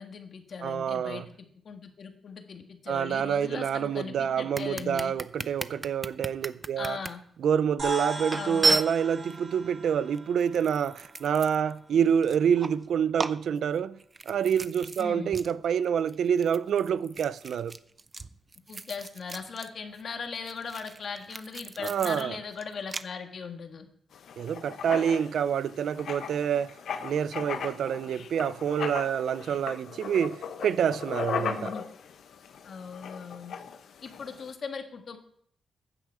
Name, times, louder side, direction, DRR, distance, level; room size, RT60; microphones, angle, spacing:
voice 1, 0.0-5.1 6.8-7.2 8.3-8.8 15.0-15.4 18.7-23.9 31.4-31.8 32.6-33.5 34.0-35.2, left 5 dB, 55° left, 1.8 m, -39 dB
voice 2, 0.6-1.2 2.9-7.0 7.4-14.0 14.3-17.7 21.8-22.4 24.4-26.7 27.0-30.4 30.6-31.7, right 8 dB, 75° right, 0.5 m, -27 dB
sound 1, 4.5-7.1 7.7-7.8 8.3-9.4 10.1-11.8 12.1-12.9 13.2-15.1 15.3-15.5 15.8-19.7 19.9-23.0, right 3 dB, 25° right, 0.6 m, -34 dB
sound 2, 7.8-12.4, right 2 dB, 45° right, 6.1 m, -38 dB
Writing, 24.1-34.5, left 7 dB, 75° left, 1.1 m, -38 dB
15.0 x 9.9 x 4.9 m
cardioid pair, 120°, 0 cm